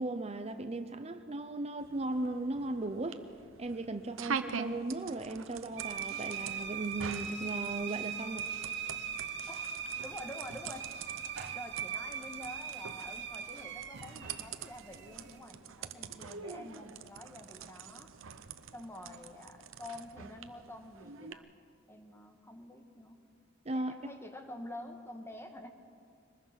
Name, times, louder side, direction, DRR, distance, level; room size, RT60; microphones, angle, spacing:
voice 1, 0.0-3.2 3.6-8.5 23.7-23.9, right 2 dB, 30° right, 9 dB, 0.7 m, -37 dB
sound 1, 1.8-21.3, right 6 dB, 85° right, 0.8 m, -45 dB
sound 2, 5.8-15.4, right 7 dB, 65° right, 1.4 m, -40 dB
voice 2, 10.0-11.2 11.5-18.1 18.7-21.5 21.9-23.2 23.7-25.7, left 1 dB, 15° left, 5 dB, 1.5 m, -48 dB
23.5 x 20.0 x 5.9 m, 2.3 s
head